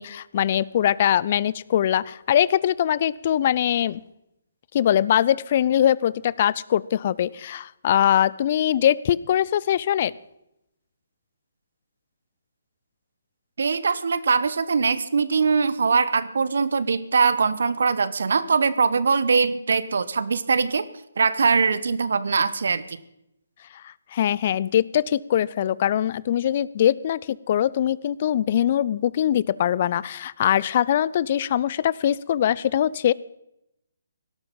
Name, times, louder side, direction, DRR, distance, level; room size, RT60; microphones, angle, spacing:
voice 1, 0.0-4.0 4.7-10.1 23.8-33.1, left 10 dB, 45° left, 22 dB, 0.5 m, -22 dB
voice 2, 13.6-20.9 21.2-23.0, right 5 dB, 65° right, 16 dB, 1.1 m, -22 dB
17.5 x 12.0 x 5.3 m, 0.84 s
figure-of-eight pair, 140°, 0 cm